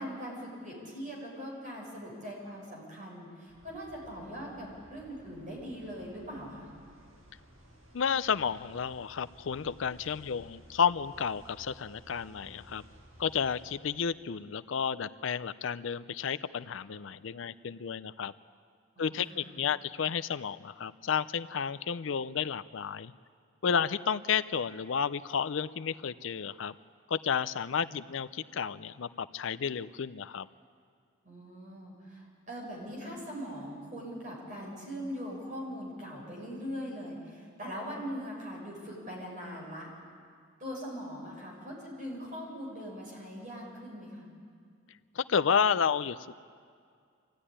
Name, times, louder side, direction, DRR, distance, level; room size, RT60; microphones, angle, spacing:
voice 1, 0.0-6.7 18.9-19.5 27.8-27.9 31.2-39.9 40.6-44.3, equal, 40° right, -3 dB, 6.5 m, -41 dB
sound 1, 3.5-13.7, equal, 80° right, 6.6 m, -56 dB
voice 2, 7.9-12.8 13.2-18.3 19.0-23.1 23.6-26.7 27.1-30.5 45.1-46.2, left 7 dB, 65° left, 15 dB, 0.5 m, -31 dB
23.5 x 15.5 x 10.0 m, 2.2 s
head